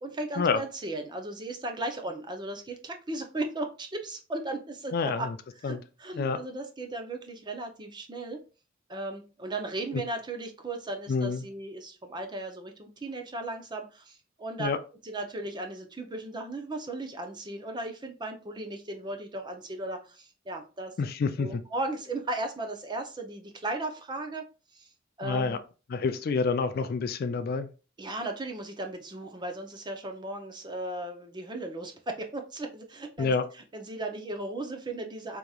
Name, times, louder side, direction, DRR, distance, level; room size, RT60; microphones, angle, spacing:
voice 1, 0.0-8.4 8.9-14.7 15.0-20.9 21.4-24.4 24.7-24.9 25.2-25.6 28.0-35.4, right 2 dB, 20° right, 4 dB, 0.6 m, -36 dB
voice 2, 4.9-5.3 5.6-5.8 6.2-6.4 11.1-11.4 14.6-14.8 21.0-21.5 25.2-25.6 25.9-27.7 33.2-33.4, left 4 dB, 45° left, 10 dB, 0.3 m, -27 dB
4.8 x 2.9 x 2.3 m, 0.34 s
head